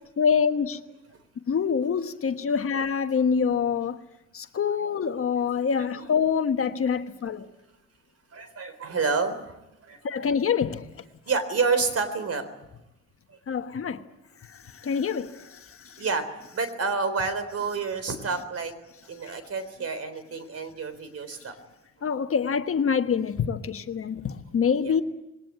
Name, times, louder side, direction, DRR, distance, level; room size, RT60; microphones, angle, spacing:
voice 1, 0.2-0.8 1.5-4.0 4.3-7.5 10.0-10.8 13.5-14.0 14.8-15.3 22.0-25.0, left 6 dB, 45° left, 1.3 m, -25 dB
voice 2, 8.3-10.2 11.3-12.5 13.3-13.4 16.0-18.7 19.0-21.6 24.7-25.0, right 4 dB, 55° right, 3.8 m, -29 dB
21.5 x 19.0 x 9.4 m
cardioid pair, 90°, 30 cm